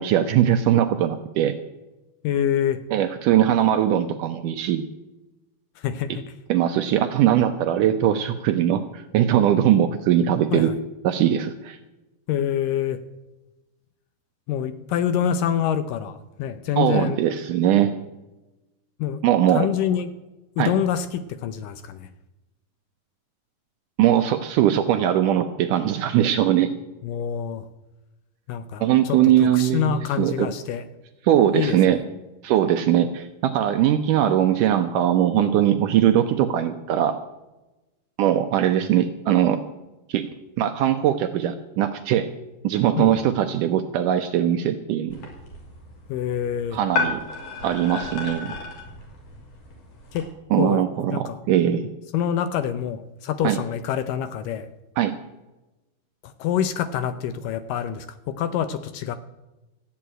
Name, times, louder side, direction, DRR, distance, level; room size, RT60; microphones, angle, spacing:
voice 1, 0.0-1.6 2.9-4.8 6.5-10.7 11.0-11.8 16.8-17.9 19.2-19.7 20.6-20.7 24.0-26.7 28.8-30.5 31.2-32.0 32.4-37.2 38.2-39.6 40.1-40.3 40.6-42.3 42.6-45.2 46.7-47.2 47.6-48.5 50.5-51.8 53.4-53.6 55.0-55.1, right 11 dB, 75° right, 8 dB, 2.0 m, -20 dB
voice 2, 2.2-2.8 5.8-6.1 10.5-10.7 12.3-13.0 14.5-17.2 19.0-19.2 19.5-20.1 20.6-22.1 27.0-27.6 28.5-30.8 31.5-31.8 43.0-43.2 46.1-46.8 50.1-50.3 50.6-50.8 51.1-51.4 52.1-54.7 56.2-59.2, left 9 dB, 75° left, 12 dB, 2.1 m, -26 dB
sound 1, 45.1-50.2, left 4 dB, 55° left, 4.2 m, -33 dB
14.0 x 8.6 x 8.9 m, 1.0 s
omnidirectional pair, 4.3 m